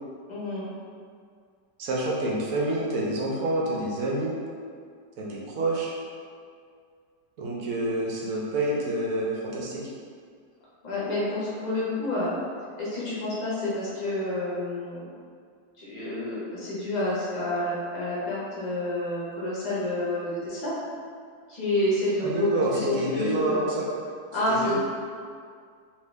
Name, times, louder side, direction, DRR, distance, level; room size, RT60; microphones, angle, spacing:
voice 1, 0.3-0.7 10.8-12.3 12.8-15.0 15.8-20.7 21.5-23.6 24.3-24.8, left 1 dB, 35° left, -8 dB, 0.7 m, -29 dB
voice 2, 1.8-4.4 5.2-6.0 7.4-9.9 22.2-23.9 24.5-24.8, right 1 dB, 65° right, -4 dB, 0.8 m, -28 dB
2.9 x 2.7 x 3.2 m, 2.1 s
omnidirectional pair, 1.9 m